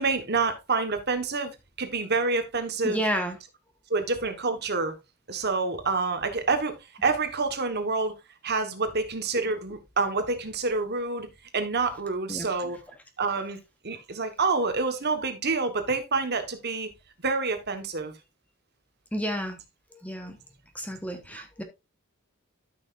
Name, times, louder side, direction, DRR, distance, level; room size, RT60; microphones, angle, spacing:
voice 1, 0.0-3.0 3.9-4.9 5.3-8.1 8.4-11.3 11.5-12.8 13.2-13.6 13.8-16.9 17.2-18.1 21.3-21.4, right 4 dB, 45° right, 1.4 m, -27 dB
voice 2, 2.8-3.4 12.3-12.5 19.1-19.6 19.9-20.4 20.7-21.6, equal, 5° left, 1.2 m, -31 dB
13.0 x 6.0 x 2.5 m
head